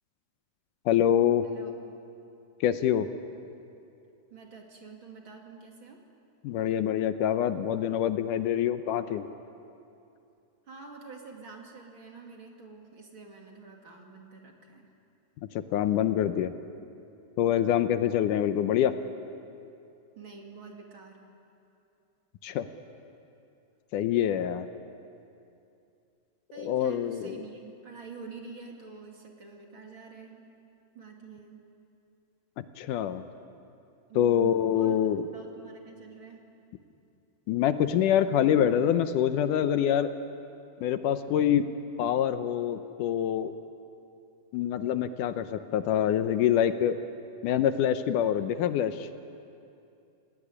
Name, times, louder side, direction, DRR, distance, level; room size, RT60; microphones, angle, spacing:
voice 1, 0.9-1.4 2.6-3.1 6.4-9.3 15.7-16.5 17.4-18.9 22.4-22.7 23.9-24.7 26.6-27.4 32.8-33.2 34.2-35.2 37.5-40.1 40.8-41.7 42.0-43.5 44.5-47.0 47.4-49.1, left 10 dB, 75° left, 10 dB, 2.3 m, -25 dB
voice 2, 1.4-1.7 4.3-6.0 10.7-14.9 17.5-18.0 20.2-21.3 26.5-30.5 30.9-31.6 34.1-35.0 35.3-36.6, right 5 dB, 40° right, 1 dB, 3.0 m, -47 dB
29.0 x 19.0 x 9.8 m, 2.6 s
omnidirectional pair, 3.8 m